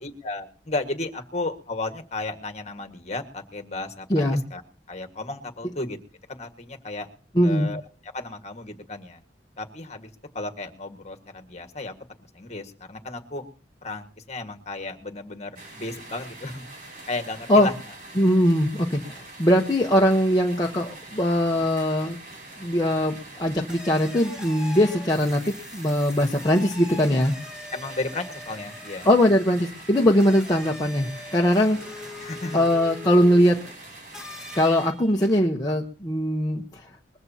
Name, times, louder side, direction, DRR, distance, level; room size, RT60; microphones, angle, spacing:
voice 1, 0.0-4.6 4.9-6.0 6.3-7.1 7.4-7.8 8.1-9.2 9.6-11.9 12.3-13.4 13.8-17.7 27.7-29.1 32.2-32.7, left 2 dB, 40° left, 7 dB, 1.7 m, -34 dB
voice 2, 4.1-4.4 7.3-7.7 17.5-17.7 18.2-22.2 22.6-27.4 29.0-32.1 32.5-33.6 34.5-36.8, equal, 20° left, -1 dB, 1.0 m, -21 dB
sound 1, 15.6-34.9, right 2 dB, 50° right, 5.5 m, -44 dB
sound 2, 20.0-20.5 22.5-22.6 23.7-33.7 34.1-35.5, left 2 dB, 5° right, 2.0 m, -42 dB
21.5 x 14.5 x 2.8 m, 0.38 s
head